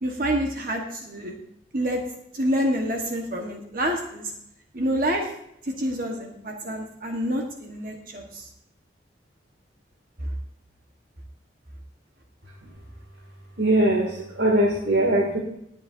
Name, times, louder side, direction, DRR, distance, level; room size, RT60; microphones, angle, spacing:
voice 1, 0.0-1.3 1.7-2.0 2.3-4.3 4.7-5.3 5.6-8.5 10.2-10.3, equal, 45° right, 1 dB, 1.4 m, -27 dB
voice 2, 13.6-15.4, right 1 dB, 65° right, -3 dB, 2.6 m, -21 dB
21.0 x 7.9 x 2.7 m, 0.78 s
head